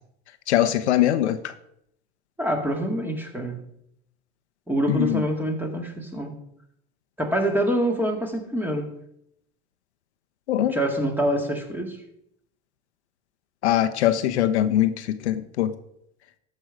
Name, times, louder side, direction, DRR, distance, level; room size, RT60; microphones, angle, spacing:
voice 1, 0.5-1.4 4.9-5.2 10.5-10.7 13.6-15.7, left 12 dB, 80° left, 0.8 m, -22 dB
voice 2, 2.4-3.6 4.7-6.3 7.2-8.9 10.6-12.0, right 1 dB, 5° right, 2.1 m, -26 dB
13.5 x 5.5 x 4.7 m
hypercardioid pair, 90°, 33 cm